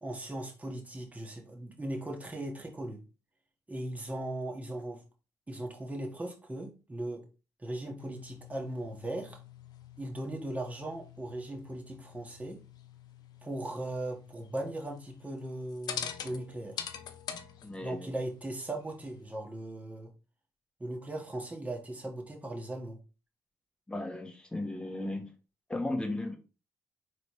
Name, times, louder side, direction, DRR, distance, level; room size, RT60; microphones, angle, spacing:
voice 1, 0.0-3.0 3.7-5.0 5.5-7.2 7.6-9.4 10.0-12.6 13.4-16.9 17.8-20.1 20.8-23.0, right 1 dB, 20° right, 2 dB, 1.4 m, -38 dB
sound 1, 8.0-19.4, left 8 dB, 70° left, 0.5 m, -46 dB
voice 2, 17.6-18.1 23.9-25.3 25.7-26.4, left 2 dB, 15° left, 4 dB, 1.2 m, -35 dB
4.0 x 3.3 x 3.1 m, 0.32 s
supercardioid pair, 65°, 7 cm